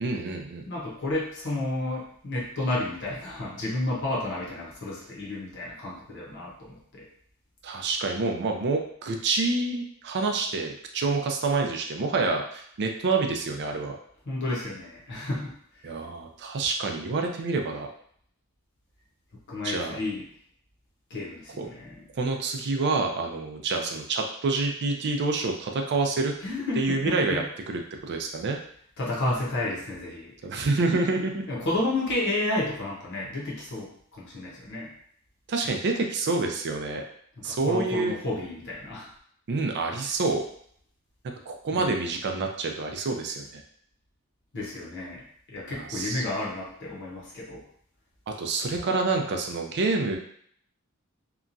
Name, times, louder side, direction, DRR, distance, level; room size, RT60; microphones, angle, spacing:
voice 1, 0.0-0.6 7.6-14.0 15.8-17.9 19.6-20.0 21.6-21.7 22.2-26.3 26.8-28.6 30.4-31.4 35.5-37.0 37.4-38.1 39.5-40.4 41.5-43.6 45.7-46.2 48.3-50.2, right 3 dB, 55° right, 3 dB, 0.4 m, -27 dB
voice 2, 0.7-7.1 14.3-15.5 19.5-20.2 21.1-22.0 26.4-27.4 29.0-30.3 31.5-34.9 37.4-39.1 41.7-42.0 44.5-45.2 45.5-47.6, left 2 dB, 55° left, -4 dB, 0.8 m, -31 dB
2.8 x 2.3 x 2.5 m, 0.64 s
head